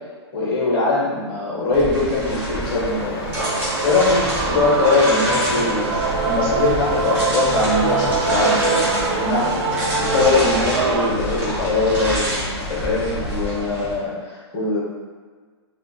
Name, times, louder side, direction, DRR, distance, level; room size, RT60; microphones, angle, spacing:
voice 1, 0.3-3.3 3.8-5.9 6.2-8.9 9.2-9.5 10.0-14.8, left 3 dB, 20° left, -6 dB, 0.9 m, -21 dB
sound 1, 1.7-13.9, equal, 15° right, 0.5 m, -28 dB
sound 2, 2.2-13.5, left 2 dB, 55° left, 0.5 m, -32 dB
Male singing / Female singing / Musical instrument, 3.4-11.1, right 4 dB, 90° right, 0.4 m, -23 dB
3.0 x 2.1 x 3.8 m, 1.5 s
hypercardioid pair, 175°, 14 cm